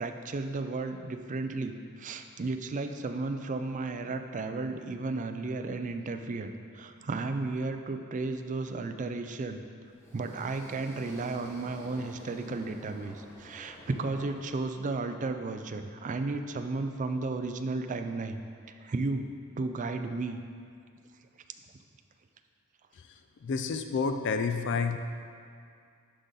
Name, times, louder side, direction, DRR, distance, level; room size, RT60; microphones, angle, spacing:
voice 1, 0.0-9.6 10.1-18.4 18.8-19.2 19.6-20.4, right 3 dB, 35° right, 7 dB, 0.4 m, -34 dB
sound 1, 9.9-15.0, left 1 dB, 15° left, 0.9 m, -50 dB
voice 2, 23.4-25.0, left 5 dB, 60° left, 7 dB, 0.4 m, -29 dB
11.5 x 4.0 x 3.9 m, 2.3 s
head